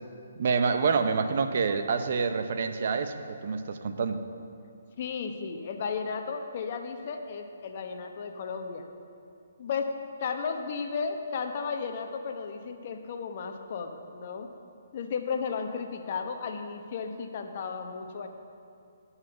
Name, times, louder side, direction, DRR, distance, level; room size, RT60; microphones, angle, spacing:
voice 1, 0.4-4.2, right 5 dB, 55° right, 8 dB, 0.7 m, -27 dB
voice 2, 5.0-8.8 9.6-9.9 10.2-14.5 14.9-18.3, left 5 dB, 45° left, 5 dB, 1.0 m, -34 dB
11.0 x 5.6 x 6.8 m, 2.5 s
hypercardioid pair, 145°, 0 cm